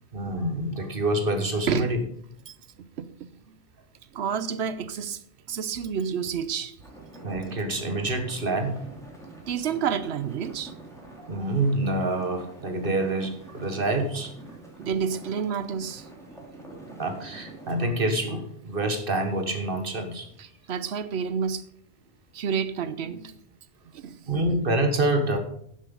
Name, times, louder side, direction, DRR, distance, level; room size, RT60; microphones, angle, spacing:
voice 1, 0.1-2.0 7.2-8.7 11.2-14.3 17.0-20.3 24.3-25.4, right 2 dB, 55° right, 6 dB, 1.6 m, -27 dB
voice 2, 2.5-3.6 4.1-5.2 5.5-6.7 9.5-10.7 14.8-16.1 20.4-21.6 22.3-23.4 23.9-24.3, right 7 dB, 80° right, 14 dB, 1.0 m, -30 dB
sound 1, 6.8-17.8, right 2 dB, 5° left, 2.5 m, -46 dB
11.0 x 7.5 x 5.4 m, 0.68 s
omnidirectional pair, 1.1 m